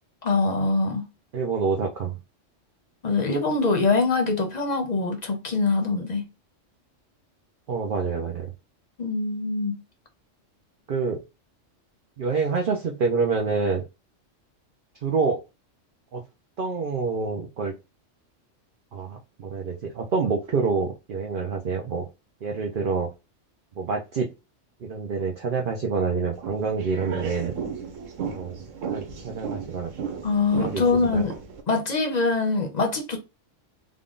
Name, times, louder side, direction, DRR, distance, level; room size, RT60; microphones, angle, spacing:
voice 1, 0.2-1.1 3.0-6.3 9.0-9.8 30.2-31.3 31.7-33.2, left 3 dB, 40° left, 0.8 m, -23 dB
voice 2, 1.3-2.2 7.7-8.5 10.9-11.2 12.2-13.8 15.0-15.4 16.1-16.2 16.6-17.7 18.9-22.1 22.4-23.1 23.8-24.3 24.8-27.5 28.3-28.6 28.9-29.9 30.6-30.8 31.1-31.3, right 4 dB, 55° right, 0.7 m, -27 dB
sound 1, 26.4-31.6, right 6 dB, 90° right, 1.2 m, -35 dB
3.7 x 2.2 x 3.7 m
omnidirectional pair, 1.3 m